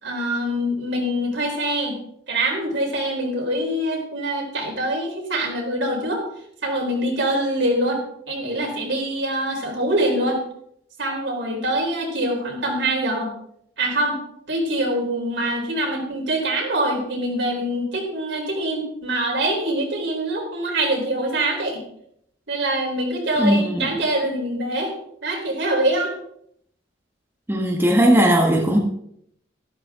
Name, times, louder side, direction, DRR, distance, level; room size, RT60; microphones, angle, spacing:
voice 1, 0.0-2.0 2.3-6.2 6.6-10.4 11.0-13.3 13.8-14.2 14.5-21.8 22.5-24.9 25.2-26.1, right 1 dB, 70° right, 0 dB, 3.9 m, -24 dB
voice 2, 23.4-23.9 27.5-28.8, right 1 dB, 10° right, 0 dB, 1.4 m, -18 dB
13.0 x 12.5 x 3.6 m, 0.71 s
head